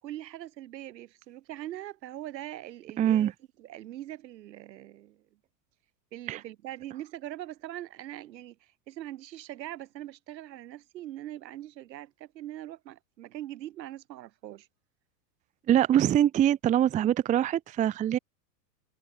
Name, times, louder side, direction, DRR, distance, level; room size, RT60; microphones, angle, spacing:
voice 1, 0.0-3.3 3.6-5.2 6.1-14.7, right 13 dB, 80° right, 5.1 m, -42 dB
voice 2, 3.0-3.3 6.3-6.4 15.7-18.2, right 11 dB, 15° right, 0.6 m, -23 dB
supercardioid pair, 145°, 50 cm